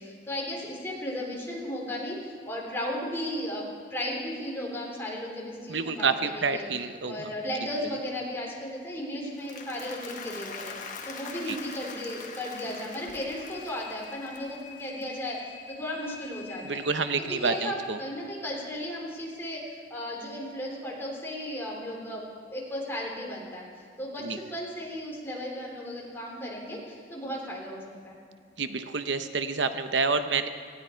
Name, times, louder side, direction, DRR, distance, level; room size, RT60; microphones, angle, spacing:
voice 1, 0.0-3.6 3.9-6.7 7.0-16.8 17.2-22.2 22.5-28.2, left 1 dB, 15° left, -3 dB, 3.5 m, -35 dB
voice 2, 5.7-7.3 11.5-11.6 16.6-18.0 24.2-24.4 28.6-30.5, right 4 dB, 90° right, 9 dB, 0.8 m, -28 dB
Applause, 9.2-15.6, left 5 dB, 45° left, 1.4 m, -43 dB
sound 1, 13.1-17.7, left 5 dB, 65° left, 1.2 m, -47 dB
18.5 x 15.5 x 4.5 m, 2.2 s
head